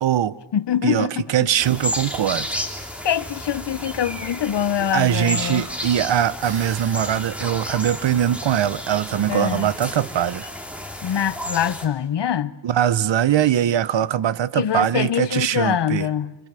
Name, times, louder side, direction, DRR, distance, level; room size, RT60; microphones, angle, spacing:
voice 1, 0.0-0.4 0.8-2.5 4.9-10.5 12.6-16.1, right 10 dB, 80° right, 0.8 m, -21 dB
voice 2, 0.5-1.5 3.0-5.7 9.3-9.7 11.0-12.6 14.5-16.4, left 9 dB, 70° left, 0.8 m, -24 dB
sound 1, 1.6-11.9, equal, 5° right, 2.8 m, -32 dB
sound 2, 6.4-7.5, right 5 dB, 55° right, 1.8 m, -40 dB
26.0 x 25.5 x 6.8 m
wide cardioid pair, 110°, 44 cm